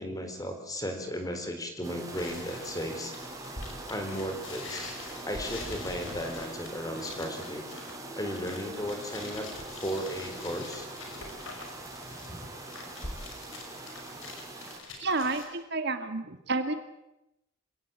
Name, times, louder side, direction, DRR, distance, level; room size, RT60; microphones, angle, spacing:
voice 1, 0.0-3.1 3.9-5.0 5.2-7.6 8.2-10.9, equal, 20° left, 5 dB, 4.2 m, -35 dB
sound 1, 1.8-14.8, right 2 dB, 15° right, 4.6 m, -42 dB
sound 2, 2.1-15.5, left 3 dB, 75° left, 6.0 m, -44 dB
voice 2, 15.0-16.7, right 3 dB, 55° right, 8 dB, 2.0 m, -30 dB
27.0 x 17.5 x 9.0 m, 0.90 s
head